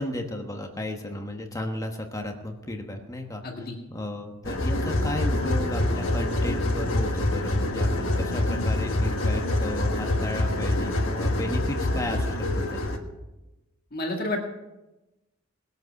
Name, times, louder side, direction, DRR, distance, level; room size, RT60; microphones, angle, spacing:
voice 1, 0.0-12.8, left 1 dB, 15° left, 3 dB, 1.2 m, -34 dB
voice 2, 3.4-3.8 13.9-14.4, left 2 dB, 45° left, 1 dB, 2.0 m, -30 dB
sound 1, 4.4-13.0, left 1 dB, 80° left, 1.6 m, -26 dB
19.5 x 8.2 x 5.9 m, 1.0 s
head